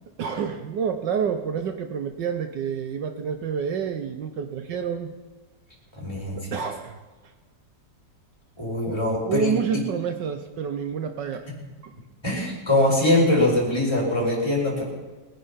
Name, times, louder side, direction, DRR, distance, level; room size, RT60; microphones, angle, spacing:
voice 1, 0.2-5.1 6.4-7.0 8.9-9.0 9.3-11.4 11.8-11.9, right 7 dB, 75° right, 7 dB, 1.5 m, -28 dB
voice 2, 6.0-6.4 8.6-9.5 12.2-14.8, left 1 dB, 15° left, -4 dB, 5.0 m, -22 dB
21.0 x 9.9 x 5.6 m, 1.3 s
omnidirectional pair, 2.0 m